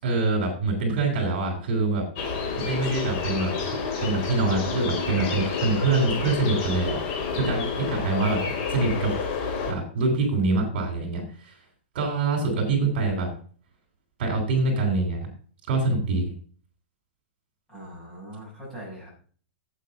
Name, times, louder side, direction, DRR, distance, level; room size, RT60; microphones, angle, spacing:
voice 1, 0.0-2.1 2.6-3.7 4.0-8.4 8.7-11.5 11.9-13.3 14.2-15.3 15.7-16.3, right 3 dB, 55° right, 2 dB, 4.2 m, -25 dB
sound 1, 2.2-9.7, left 5 dB, 35° left, 2.8 m, -29 dB
voice 2, 7.3-7.9 17.7-19.1, right 1 dB, 10° left, -6 dB, 6.5 m, -41 dB
8.5 x 8.4 x 5.5 m, 0.43 s
supercardioid pair, 165°, 6 cm